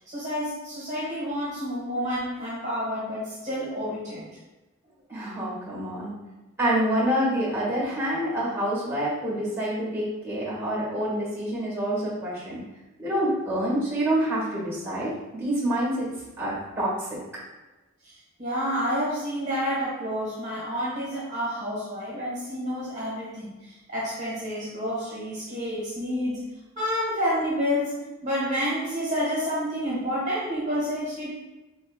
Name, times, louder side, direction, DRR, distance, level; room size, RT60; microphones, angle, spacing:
voice 1, 0.1-4.3 18.0-18.1 18.4-26.5 26.8-31.3, equal, 35° right, -8 dB, 1.1 m, -29 dB
voice 2, 5.1-6.1 6.6-12.6 13.0-16.1 16.4-17.1, right 1 dB, 10° right, -6 dB, 1.5 m, -27 dB
4.0 x 3.8 x 2.2 m, 1.1 s
head